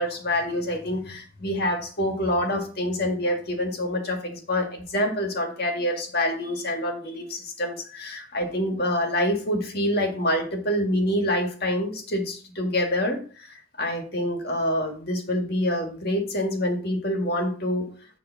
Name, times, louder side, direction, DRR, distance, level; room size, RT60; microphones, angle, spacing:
voice 1, 0.0-17.9, left 1 dB, 50° left, 3 dB, 1.8 m, -26 dB
9.7 x 3.4 x 5.6 m, 0.40 s
head